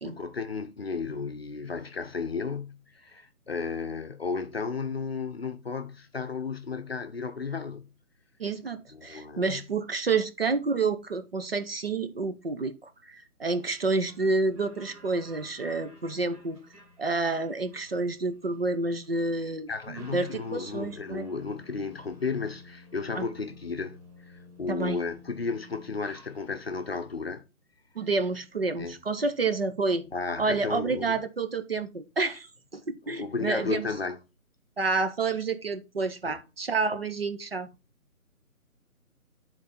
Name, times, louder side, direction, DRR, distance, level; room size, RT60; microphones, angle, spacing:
voice 1, 0.0-7.9 8.9-9.6 19.7-24.0 24.3-27.5 28.8-28.9 30.1-31.2 33.1-34.2 36.2-36.4, left 4 dB, 45° left, 0.7 m, -34 dB
voice 2, 8.4-16.6 17.0-21.3 23.1-23.3 24.7-25.0 28.0-30.1 30.4-32.5 32.7-33.9 34.8-37.7, right 3 dB, 40° right, 0.8 m, -29 dB
sound 1, 14.0-26.8, left 1 dB, 10° right, 2.4 m, -52 dB
10.0 x 4.0 x 4.2 m
hypercardioid pair, 170°, 44 cm